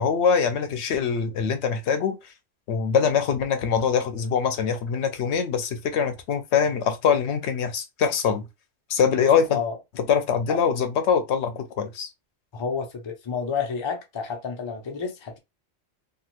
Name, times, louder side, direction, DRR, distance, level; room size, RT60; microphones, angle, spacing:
voice 1, 0.0-2.2 2.7-8.4 8.9-9.6 10.1-12.1, left 6 dB, 85° left, 0.9 m, -23 dB
voice 2, 9.2-9.8 10.5-10.6 12.5-15.4, left 6 dB, 35° left, 0.5 m, -30 dB
2.9 x 2.6 x 2.5 m
omnidirectional pair, 1.1 m